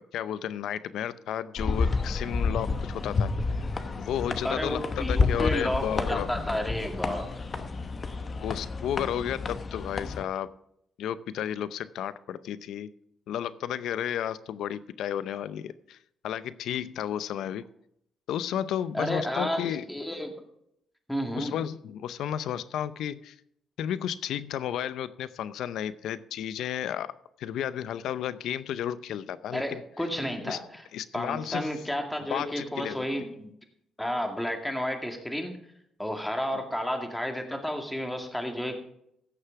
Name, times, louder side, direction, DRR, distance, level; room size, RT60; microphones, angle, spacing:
voice 1, 0.0-3.3 4.0-6.3 8.4-10.5 11.0-12.9 13.3-16.0 16.2-17.6 18.3-19.9 21.4-23.3 23.8-27.1 27.4-29.8 30.5-30.6 30.9-31.7 32.3-33.0, left 10 dB, 80° left, 15 dB, 0.6 m, -32 dB
sound 1, 1.6-10.2, left 4 dB, 40° left, 1.1 m, -30 dB
voice 2, 4.4-7.7 18.9-19.6 19.9-20.3 21.1-21.5 29.5-30.8 31.1-33.5 34.0-35.6 36.0-38.8, equal, 5° left, 3 dB, 2.1 m, -31 dB
15.5 x 6.6 x 4.7 m, 0.74 s
cardioid pair, 90°, 0 cm